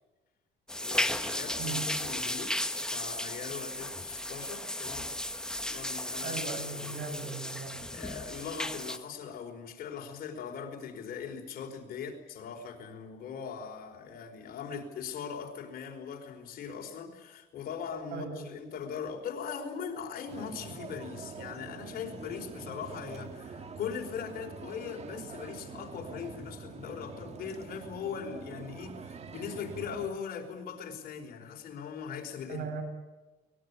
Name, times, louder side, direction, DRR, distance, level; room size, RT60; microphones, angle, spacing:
sound 1, 0.7-9.0, left 1 dB, 5° left, 1.3 m, -35 dB
voice 1, 0.8-2.6 2.9-5.1 5.6-7.1 7.9-32.6, left 7 dB, 60° left, 3 dB, 4.9 m, -40 dB
voice 2, 1.6-1.9 6.2-7.7 18.1-18.4 32.5-32.8, right 6 dB, 70° right, 7 dB, 7.6 m, -38 dB
sound 2, 20.3-30.1, right 5 dB, 40° right, 1.8 m, -45 dB
23.5 x 20.5 x 10.0 m, 1.1 s
cardioid pair, 110°, 17 cm